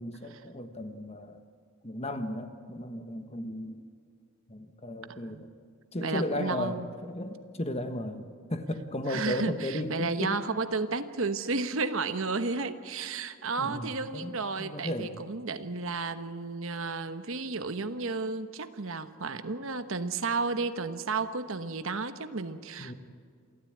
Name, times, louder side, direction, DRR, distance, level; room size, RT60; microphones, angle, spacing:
voice 1, 0.0-1.4 1.8-3.8 4.5-5.5 5.9-10.4 13.6-15.1 22.8-22.9, left 1 dB, 30° left, 7 dB, 1.4 m, -35 dB
voice 2, 5.1-5.4 6.0-6.9 9.1-22.9, right 4 dB, 60° right, 10 dB, 1.1 m, -32 dB
28.0 x 13.5 x 8.8 m, 2.2 s
head